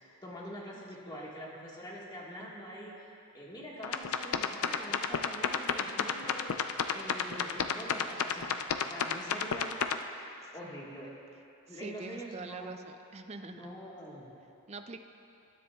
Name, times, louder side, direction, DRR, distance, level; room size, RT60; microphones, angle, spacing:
voice 1, 0.2-3.0 3.3-9.7 10.5-11.1 11.7-12.7 13.5-14.3, equal, 20° left, -5 dB, 1.6 m, -44 dB
sound 1, 3.8-10.0, left 7 dB, 85° left, 0.5 m, -31 dB
voice 2, 11.7-13.6 14.7-15.0, right 3 dB, 30° right, 7 dB, 0.4 m, -44 dB
20.0 x 9.9 x 2.4 m, 3.0 s
head